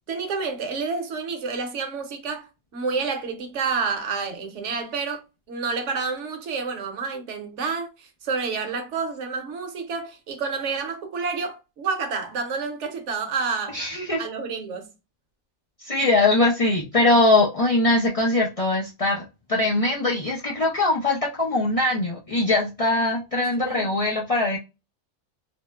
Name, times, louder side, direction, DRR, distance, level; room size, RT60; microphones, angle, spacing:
voice 1, 0.1-5.2 5.5-13.8 14.2-14.9 23.4-23.9, right 5 dB, 65° right, 1.0 m, -29 dB
voice 2, 13.7-14.2 15.8-19.2 19.5-24.6, left 2 dB, 60° left, 0.3 m, -21 dB
3.5 x 2.0 x 2.2 m
omnidirectional pair, 1.4 m